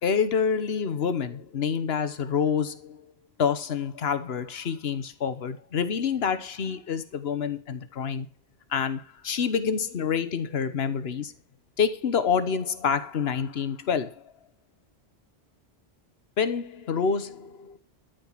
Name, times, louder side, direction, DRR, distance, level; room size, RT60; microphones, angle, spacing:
voice 1, 0.0-3.0 3.4-8.3 8.7-11.3 11.8-14.1 16.4-17.8, left 6 dB, 70° left, 1.3 m, -27 dB
13.5 x 5.3 x 7.4 m
omnidirectional pair, 1.1 m